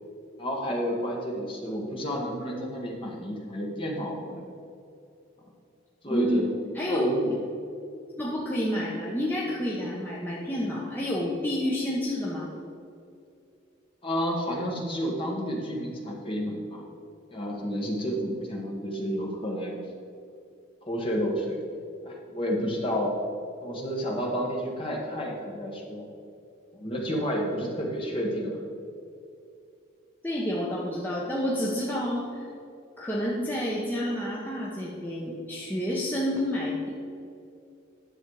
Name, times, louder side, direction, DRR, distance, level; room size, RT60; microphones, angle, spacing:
voice 1, 0.4-4.4 6.0-6.5 6.9-7.3 14.0-16.9 17.3-19.7 20.8-21.6 22.0-23.1 23.6-26.0 26.7-28.6, equal, 25° left, -1 dB, 1.5 m, -30 dB
voice 2, 6.0-6.4 6.7-7.1 8.2-12.5 30.2-32.5 33.0-36.9, left 1 dB, 10° left, -5 dB, 1.0 m, -29 dB
10.5 x 7.3 x 4.8 m, 2.6 s
head